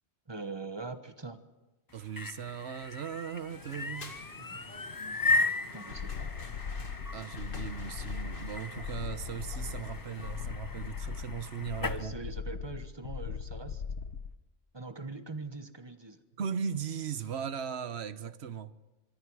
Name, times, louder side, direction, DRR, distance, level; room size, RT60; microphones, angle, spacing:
voice 1, 0.3-1.4 4.4-4.7 5.0-5.2 5.7-6.3 11.8-13.8 14.7-16.2, right 3 dB, 25° right, 1.3 m, -42 dB
sound 1, 1.9-12.0, left 3 dB, 25° left, 0.5 m, -36 dB
voice 2, 1.9-4.1 7.1-12.1 16.4-18.7, right 7 dB, 70° right, 1.2 m, -38 dB
sound 2, 3.5-10.5, left 2 dB, 50° left, 2.2 m, -50 dB
sound 3, 5.9-14.3, left 6 dB, 80° left, 1.3 m, -39 dB
25.0 x 24.5 x 4.8 m
omnidirectional pair, 1.1 m